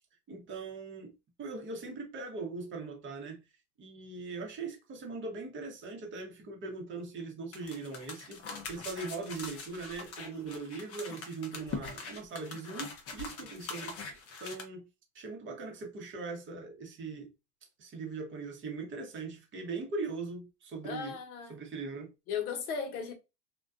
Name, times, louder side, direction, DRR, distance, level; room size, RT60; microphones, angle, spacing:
voice 1, 0.3-1.1 1.4-3.4 3.8-14.8 15.1-17.3 17.8-21.1 21.5-22.1, right 4 dB, 25° right, 0.7 m, -40 dB
sound 1, 7.5-14.6, left 4 dB, 30° left, 0.6 m, -43 dB
voice 2, 20.8-21.5 22.3-23.1, left 6 dB, 60° left, 0.9 m, -36 dB
2.4 x 2.2 x 2.3 m
hypercardioid pair, 115°, 50 cm